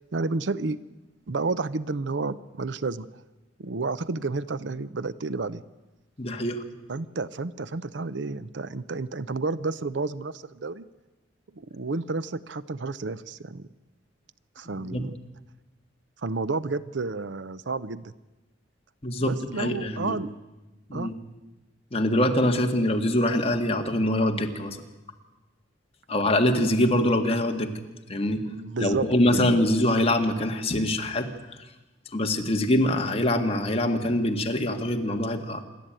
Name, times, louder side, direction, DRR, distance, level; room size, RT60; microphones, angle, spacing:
voice 1, 0.1-0.8 1.3-3.1 3.6-5.6 6.9-10.9 11.5-13.7 14.6-15.1 16.2-18.1 19.2-20.3 20.9-21.1 27.0-27.1 28.4-29.7, right 3 dB, 70° right, 16 dB, 0.7 m, -31 dB
voice 2, 6.2-6.6 14.8-15.0 19.0-20.2 20.9-21.1 21.9-24.8 26.1-27.7 28.1-28.4 28.8-31.3 32.1-35.6, left 1 dB, 35° left, 4 dB, 1.8 m, -24 dB
27.0 x 12.0 x 9.0 m, 1.1 s
head